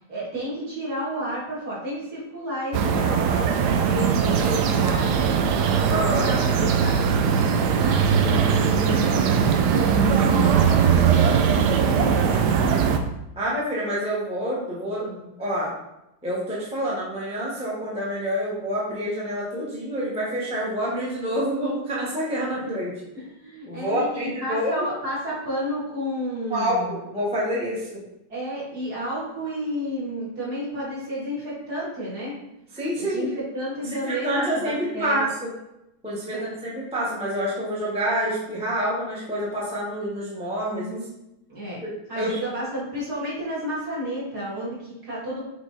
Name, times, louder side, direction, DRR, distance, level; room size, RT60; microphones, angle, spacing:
voice 1, 0.1-5.4 5.9-9.3 9.7-12.5 15.0-15.3 22.5-22.8 23.1-27.0 28.3-32.3 33.0-35.2 36.3-36.5 40.7-41.0 41.5-41.8 42.1-45.4, equal, 50° right, -8 dB, 2.9 m, -31 dB
sound 1, 2.7-13.0, right 7 dB, 75° right, 1.0 m, -20 dB
voice 2, 5.9-6.3 13.4-15.1 15.4-15.7 16.2-22.9 23.7-24.7 26.5-28.0 32.7-33.3 33.8-35.5 36.0-41.0 41.8-41.9 42.1-42.4, equal, 5° right, -7 dB, 1.1 m, -27 dB
6.2 x 3.7 x 4.0 m, 0.89 s
omnidirectional pair, 2.2 m